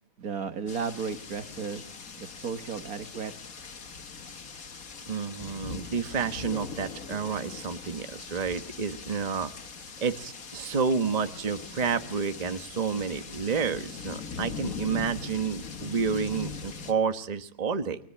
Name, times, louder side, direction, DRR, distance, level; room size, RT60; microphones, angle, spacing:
voice 1, 0.2-1.9 2.2-3.3, right 6 dB, 60° right, 10 dB, 1.9 m, -34 dB
sound 1, 0.7-16.9, left 5 dB, 55° left, 2.1 m, -41 dB
voice 2, 5.1-9.5 10.0-18.0, right 5 dB, 25° right, 9 dB, 1.2 m, -30 dB
29.5 x 22.0 x 8.6 m, 0.62 s
omnidirectional pair, 1.8 m